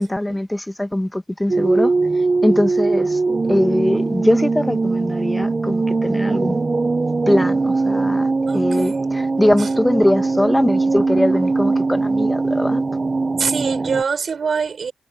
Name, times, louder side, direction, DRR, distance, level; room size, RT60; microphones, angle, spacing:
voice 1, 0.0-3.2 3.5-6.6 7.3-12.8, left 1 dB, 10° left, 1.2 m, -21 dB
sound 1, 1.5-14.0, right 3 dB, 30° right, 0.6 m, -20 dB
voice 2, 8.5-9.1 9.6-9.7 13.4-14.9, right 6 dB, 60° right, 5.6 m, -24 dB
cardioid pair, 90°, 0 cm